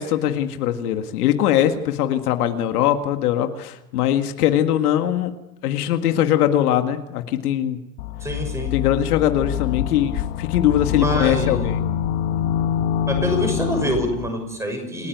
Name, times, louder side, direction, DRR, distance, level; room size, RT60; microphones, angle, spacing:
voice 1, 0.0-5.3 5.6-7.8 8.7-11.8, left 11 dB, 65° left, 7 dB, 2.0 m, -21 dB
sound 1, 8.0-14.3, left 10 dB, 45° left, 1.6 m, -25 dB
voice 2, 8.2-8.7 10.9-11.7 13.1-15.1, equal, 5° right, 4 dB, 6.3 m, -25 dB
29.0 x 14.5 x 9.5 m, 0.91 s
supercardioid pair, 155°, 48 cm